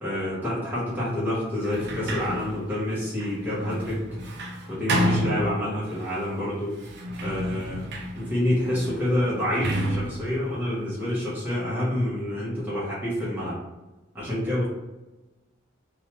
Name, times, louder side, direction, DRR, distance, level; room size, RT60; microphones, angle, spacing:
voice 1, 0.0-4.0 4.7-6.8 7.2-7.9 8.1-13.6 14.1-14.7, left 1 dB, 10° right, -9 dB, 0.9 m, -28 dB
Sliding door, 1.6-6.1 6.7-11.6, equal, 60° right, 0.5 m, -31 dB
2.6 x 2.3 x 2.9 m, 1.1 s
head